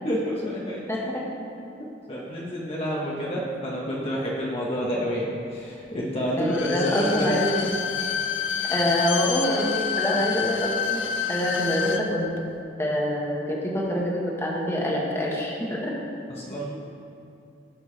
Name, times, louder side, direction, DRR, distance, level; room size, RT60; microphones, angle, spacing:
voice 1, 0.0-0.8 1.6-7.4 16.3-16.7, equal, 30° left, -5 dB, 1.1 m, -29 dB
voice 2, 0.9-1.2 6.4-7.7 8.7-11.0 11.3-12.3 12.8-15.9, left 1 dB, 15° left, -3 dB, 1.4 m, -25 dB
Bowed string instrument, 6.4-12.0 12.4-12.5, left 7 dB, 80° left, 0.6 m, -28 dB
16.5 x 5.8 x 3.3 m, 2.6 s
head